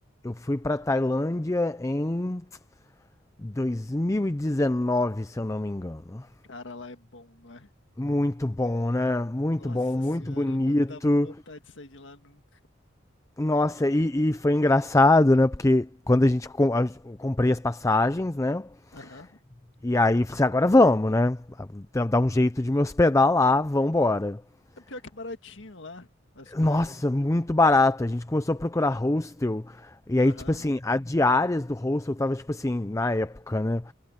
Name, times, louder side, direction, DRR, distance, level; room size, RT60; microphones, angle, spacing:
voice 1, 0.2-2.4 3.4-6.3 8.0-11.3 13.4-18.7 19.8-24.4 26.5-33.9, left 2 dB, 15° left, 0.5 m, -24 dB
voice 2, 6.5-7.7 9.6-12.6 18.9-19.4 24.8-26.1 26.3-26.9 30.2-30.7, left 2 dB, 70° left, 1.9 m, -44 dB
head